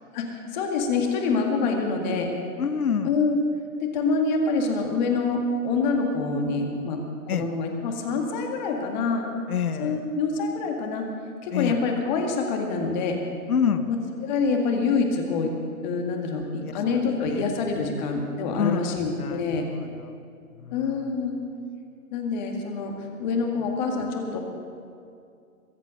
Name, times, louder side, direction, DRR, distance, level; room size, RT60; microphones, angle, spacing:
voice 1, 0.1-2.3 3.0-3.4 3.8-9.3 9.8-11.1 11.4-13.2 13.9-14.0 14.2-15.6 15.8-19.7 20.7-21.4 22.1-24.4, left 4 dB, 30° left, 2 dB, 2.0 m, -26 dB
voice 2, 2.6-3.1 7.3-7.5 9.5-10.0 11.5-11.8 13.5-13.9 16.6-17.0 17.2-17.5 18.5-20.2 20.6-21.1, left 7 dB, 70° left, 11 dB, 1.2 m, -28 dB
22.5 x 8.2 x 6.5 m, 2.4 s
hypercardioid pair, 145°, 46 cm